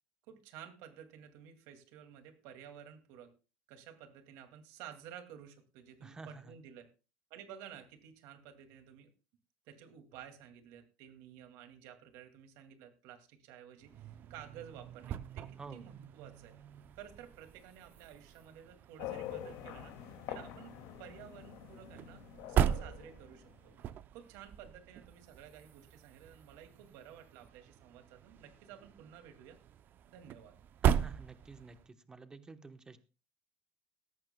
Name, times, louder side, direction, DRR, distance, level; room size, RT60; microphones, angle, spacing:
voice 1, 0.3-3.3 3.7-6.9 7.3-9.1 9.7-16.5 17.0-20.7 21.0-22.2 22.5-23.7 24.1-29.6 30.1-30.6, right 9 dB, 70° right, 7 dB, 2.3 m, -53 dB
voice 2, 6.0-6.5 15.6-15.8 30.8-33.0, right 4 dB, 15° right, 9 dB, 1.0 m, -50 dB
sound 1, 13.8-31.9, right 9 dB, 40° right, 0.5 m, -39 dB
sound 2, 19.0-23.8, left 10 dB, 75° left, 2.2 m, -46 dB
17.5 x 14.5 x 2.2 m, 0.32 s
cardioid pair, 160°, 5 cm